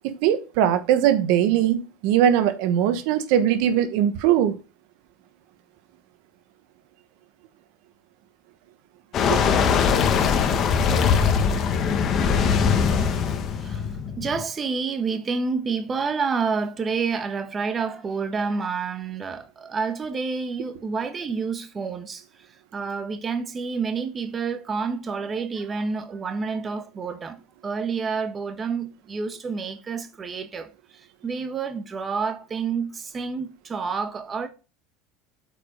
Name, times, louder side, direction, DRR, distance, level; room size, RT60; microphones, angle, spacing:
voice 1, 0.2-4.6 9.3-9.4, right 10 dB, 70° right, 1.2 m, -20 dB
sound 1, 9.1-14.4, left 6 dB, 45° left, 1.4 m, -21 dB
voice 2, 13.6-34.5, right 5 dB, 25° right, 1.3 m, -29 dB
8.3 x 5.1 x 5.0 m
supercardioid pair, 110°, 0 cm